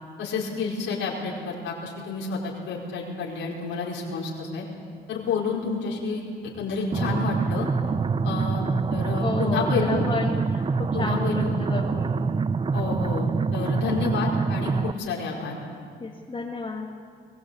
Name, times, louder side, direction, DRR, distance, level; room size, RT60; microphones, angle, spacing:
voice 1, 0.2-4.6 5.1-7.7 8.2-8.6 8.9-10.0 10.9-11.6 12.7-15.5, left 4 dB, 85° left, -4 dB, 5.1 m, -29 dB
Bass Marima Hits, 5.5-5.7 7.9-9.5 11.1-12.5, right 6 dB, 60° right, 3.7 m, -38 dB
sound 1, 6.9-14.9, right 4 dB, 25° right, 0.6 m, -25 dB
voice 2, 9.2-12.3 16.0-16.9, left 3 dB, 25° left, 0 dB, 2.0 m, -32 dB
23.0 x 18.0 x 8.4 m, 2.1 s
cardioid pair, 90°, 20 cm